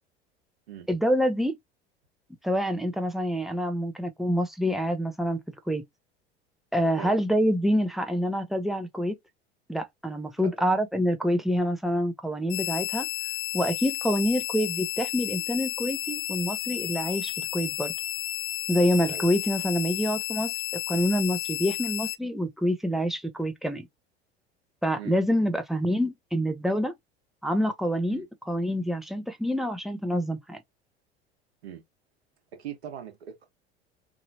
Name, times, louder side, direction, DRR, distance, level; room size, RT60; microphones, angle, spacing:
voice 1, 0.9-1.6 2.4-5.8 6.7-9.2 9.7-13.1 13.5-17.9 18.7-20.6 20.9-23.9 24.8-26.9 27.4-30.6, equal, ahead, 0.8 m, -26 dB
sound 1, 12.5-22.2, left 13 dB, 75° left, 0.5 m, -32 dB
voice 2, 32.6-33.5, right 9 dB, 80° right, 1.2 m, -40 dB
3.0 x 2.7 x 2.7 m
hypercardioid pair, 75°, 32 cm